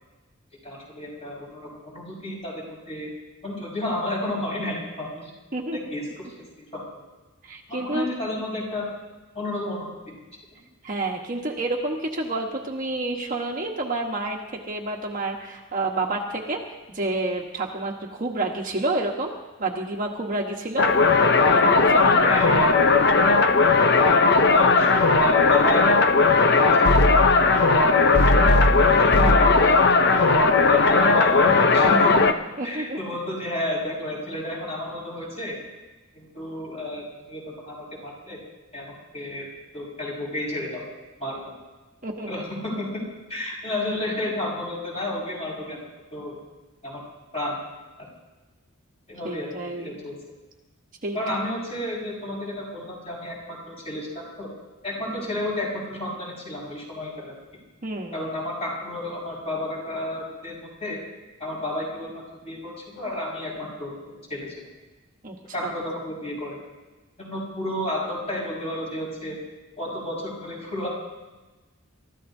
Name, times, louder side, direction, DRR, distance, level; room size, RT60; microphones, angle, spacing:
voice 1, 0.6-3.1 3.4-5.3 5.7-6.3 6.6-6.9 7.7-8.9 9.3-10.2 22.1-22.8 23.9-27.0 27.3-28.1 28.5-32.2 32.6-35.6 36.1-38.4 38.7-39.5 39.7-40.8 41.2-41.5 42.2-43.0 43.3-45.8 46.1-46.4 46.8-47.0 47.3-47.6 49.1-50.2 51.1-54.5 54.8-57.3 58.1-61.0 61.4-64.6 65.5-66.6 67.2-69.3 69.8-70.9, left 1 dB, 30° left, -4 dB, 5.4 m, -32 dB
voice 2, 7.4-8.1 10.8-14.4 14.7-16.6 16.9-19.3 19.6-20.9 21.5-22.3 32.6-33.0 42.0-42.4 49.2-50.0 51.0-51.2 57.8-58.2 65.2-65.4 65.6-65.7, right 2 dB, 40° right, 0 dB, 1.2 m, -29 dB
sound 1, 20.8-32.3, left 3 dB, 50° left, 0.7 m, -17 dB
28.5 x 14.0 x 2.7 m, 1.2 s
head